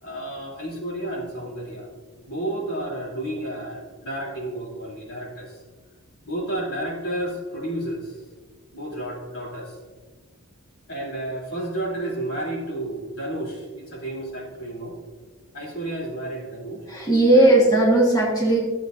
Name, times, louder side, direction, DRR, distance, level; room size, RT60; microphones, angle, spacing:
voice 1, 0.0-1.9 2.2-5.6 6.2-8.2 8.7-9.8 10.9-15.0 15.5-16.9 17.3-17.6, right 1 dB, 75° left, -4 dB, 3.1 m, -31 dB
voice 2, 16.9-18.6, right 1 dB, 15° left, -4 dB, 1.4 m, -17 dB
13.0 x 8.1 x 2.6 m, 1.4 s
head